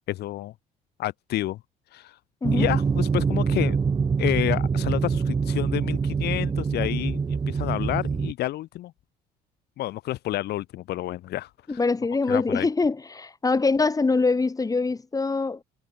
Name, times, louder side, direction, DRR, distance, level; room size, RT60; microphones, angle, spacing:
voice 1, 0.1-0.5 1.0-1.6 1.9-2.2 2.5-3.8 4.2-8.9 9.8-11.8 12.3-12.7, left 15 dB, 75° left, 3.4 m, -29 dB
sound 1, 2.4-8.3, right 5 dB, 25° right, 1.0 m, -25 dB
voice 2, 11.7-15.6, left 3 dB, 20° left, 7.5 m, -24 dB
cardioid pair, 110°, 17 cm